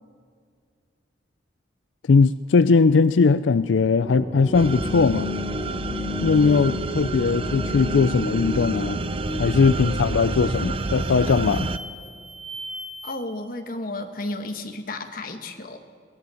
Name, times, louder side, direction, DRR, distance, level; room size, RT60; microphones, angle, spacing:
voice 1, 2.1-5.3 6.2-9.0 9.4-11.7, left 4 dB, 90° left, 14 dB, 0.4 m, -19 dB
sound 1, 4.0-9.4, left 3 dB, 15° left, 3.5 m, -31 dB
sound 2, 4.5-11.8, right 3 dB, 30° right, 0.5 m, -29 dB
sound 3, 8.7-9.0 9.5-10.0 10.5-13.1, right 1 dB, 85° right, 6.8 m, -40 dB
voice 2, 13.0-15.8, left 2 dB, 50° left, 6 dB, 1.5 m, -32 dB
22.0 x 18.5 x 7.1 m, 2.2 s
head